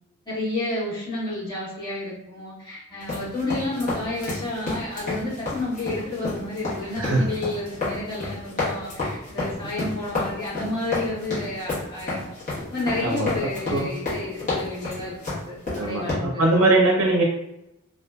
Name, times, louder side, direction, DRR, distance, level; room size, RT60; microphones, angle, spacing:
voice 1, 0.2-12.4 12.7-16.4, left 2 dB, 20° left, -11 dB, 1.3 m, -31 dB
sound 1, 3.0-16.1, left 2 dB, 35° left, 1.0 m, -30 dB
voice 2, 7.0-7.3 13.0-13.3 13.7-13.9 15.8-17.2, right 2 dB, 90° right, 0 dB, 0.4 m, -21 dB
2.6 x 2.2 x 2.2 m, 0.87 s
head